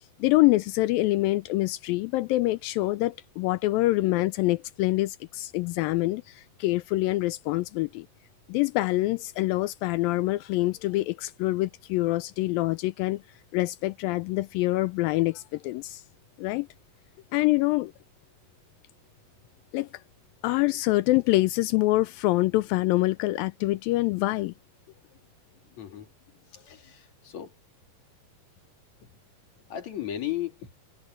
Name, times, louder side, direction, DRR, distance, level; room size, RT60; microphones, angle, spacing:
voice 1, 0.2-8.1 8.5-13.2 13.5-16.0 16.4-16.7 17.3-17.9 19.7-19.9 20.4-24.5, left 19 dB, 80° left, 2.2 m, -25 dB
voice 2, 25.8-26.1 26.5-27.6 29.0-29.1 29.7-30.7, left 12 dB, 50° left, 3.4 m, -35 dB
omnidirectional pair, 4.3 m